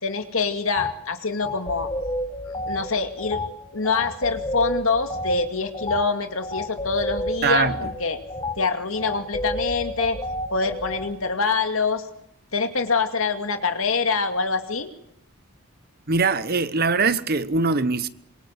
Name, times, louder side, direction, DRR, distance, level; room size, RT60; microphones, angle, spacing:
voice 1, 0.0-1.9 2.7-3.4 3.7-8.2 8.6-10.2 10.5-12.1 12.5-14.9, left 4 dB, 65° left, 2.4 m, -25 dB
sound 1, 0.7-0.9 1.4-11.1, left 1 dB, 20° left, 2.6 m, -31 dB
voice 2, 7.4-7.8 16.1-18.1, right 4 dB, 45° right, 1.0 m, -22 dB
26.0 x 23.0 x 8.1 m
head